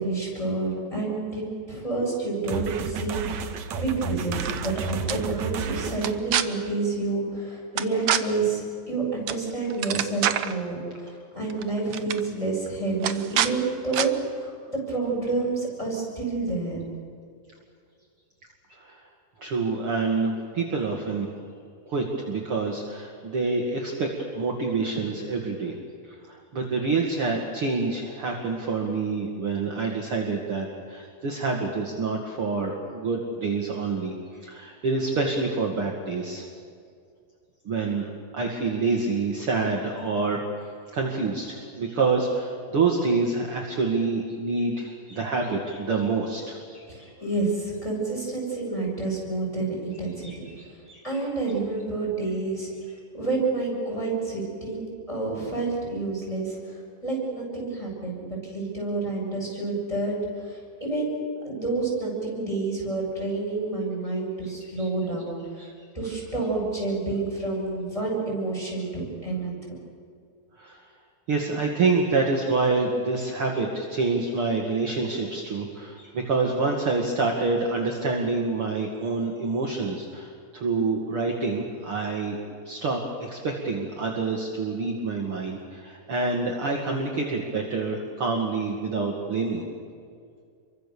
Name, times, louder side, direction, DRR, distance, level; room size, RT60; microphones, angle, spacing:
voice 1, 0.0-16.9 46.9-50.4 51.0-52.7 53.1-65.7 65.9-69.5, right 3 dB, 10° left, -2 dB, 8.0 m, -29 dB
sound 1, 2.5-6.2, right 5 dB, 65° right, 2.3 m, -32 dB
sound 2, 4.2-4.7 5.1-5.2 6.0-6.4 7.8-8.2 9.3-9.4 9.7-10.5 11.5-11.6 11.9-12.2 13.0-13.5 13.9-14.1, right 10 dB, 85° right, 1.2 m, -25 dB
voice 2, 18.7-19.0 19.4-21.3 21.9-24.1 24.3-25.7 26.0-34.2 34.4-36.5 37.6-47.1 50.2-51.2 64.4-64.9 65.6-65.7 70.5-70.8 71.3-82.4 82.6-89.6, right 3 dB, 45° right, 0 dB, 2.8 m, -27 dB
29.0 x 24.0 x 7.0 m, 2.2 s
omnidirectional pair, 3.9 m